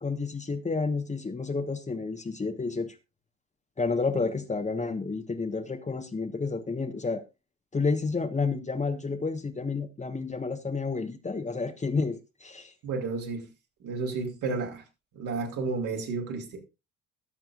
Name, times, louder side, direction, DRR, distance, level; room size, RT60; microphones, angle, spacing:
voice 1, 0.0-3.0 3.8-7.2 7.7-12.7, left 4 dB, 20° left, 1.4 m, -30 dB
voice 2, 12.8-13.5 13.8-14.8 15.1-16.6, right 4 dB, 55° right, 3.7 m, -32 dB
22.5 x 7.6 x 2.5 m
figure-of-eight pair, 50°, 36 cm